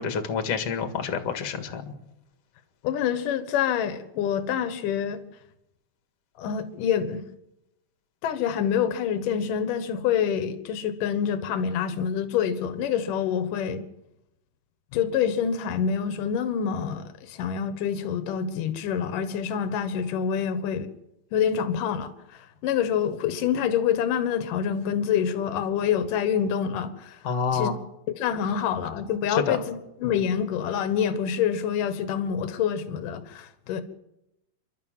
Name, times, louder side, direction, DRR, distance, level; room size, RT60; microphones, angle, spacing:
voice 1, 0.0-1.9 27.2-27.8 29.3-29.6, left 6 dB, 50° left, 7 dB, 2.6 m, -28 dB
voice 2, 2.8-5.2 6.4-7.2 8.2-13.8 14.9-20.9 21.3-27.2 27.5-27.7 28.2-33.8, left 8 dB, 75° left, 10 dB, 2.9 m, -26 dB
29.0 x 12.0 x 7.4 m, 0.86 s
omnidirectional pair, 3.8 m